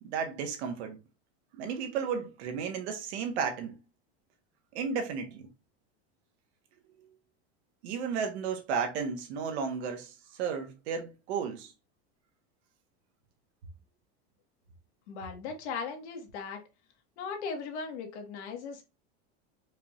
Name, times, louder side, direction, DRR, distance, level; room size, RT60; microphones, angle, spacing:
voice 1, 0.0-1.0 1.5-3.8 4.7-5.5 7.8-11.7, right 6 dB, 75° right, 1.2 m, -33 dB
voice 2, 15.1-16.6 17.2-18.8, left 5 dB, 85° left, 1.5 m, -38 dB
4.7 x 3.1 x 2.4 m
supercardioid pair, 175°, 33 cm